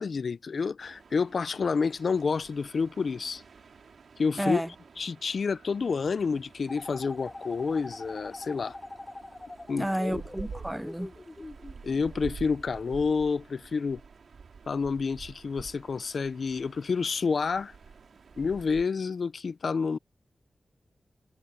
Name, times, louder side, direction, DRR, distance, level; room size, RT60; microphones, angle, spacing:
voice 1, 0.0-3.4 4.2-8.8 9.7-10.2 11.8-14.0 14.7-17.7 18.4-20.0, left 5 dB, 65° left, 0.4 m, -29 dB
sound 1, 0.8-18.9, right 5 dB, 80° right, 3.6 m, -49 dB
voice 2, 4.4-4.7 9.8-11.1, right 1 dB, 5° right, 0.5 m, -30 dB
sound 2, 5.9-13.1, right 3 dB, 35° right, 7.4 m, -62 dB
sound 3, 6.7-12.1, left 2 dB, 25° left, 2.8 m, -44 dB
wide cardioid pair, 95°, 0 cm